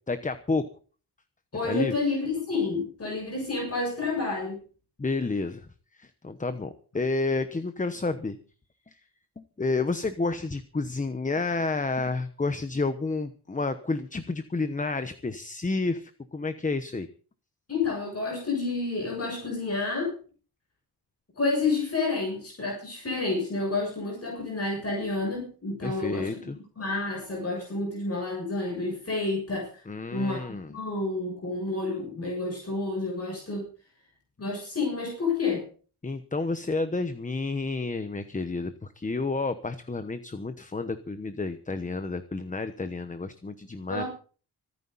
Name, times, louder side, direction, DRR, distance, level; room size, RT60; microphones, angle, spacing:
voice 1, 0.1-0.7 1.6-1.9 5.0-5.7 5.9-8.4 8.9-9.0 9.4-17.1 25.8-26.6 29.9-30.8 36.0-44.0, left 3 dB, 20° left, 11 dB, 1.0 m, -30 dB
voice 2, 1.5-4.6 17.7-20.1 21.4-26.3 26.8-29.8 30.1-33.6 34.4-35.7 43.9-44.1, left 3 dB, 35° left, -1 dB, 7.1 m, -29 dB
25.0 x 9.6 x 4.1 m, 0.40 s
wide cardioid pair, 155°, 40 cm